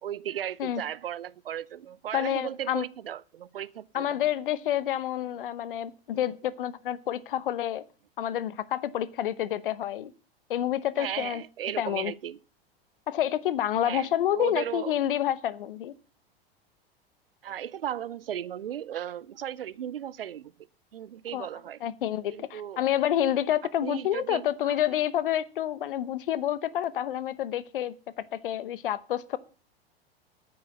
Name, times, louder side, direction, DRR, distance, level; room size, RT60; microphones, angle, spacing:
voice 1, 0.0-4.2 11.0-12.4 13.8-14.1 14.3-15.0 17.4-20.5 20.9-21.8 22.3-22.8 23.8-24.9, right 10 dB, 70° right, 0.7 m, -36 dB
voice 2, 2.1-2.8 3.9-7.8 8.2-10.1 10.5-11.4 11.8-12.1 13.1-15.9 21.3-21.5 21.8-27.9 28.3-29.4, left 11 dB, 60° left, 0.9 m, -28 dB
9.2 x 8.7 x 7.7 m
figure-of-eight pair, 90°, 30 cm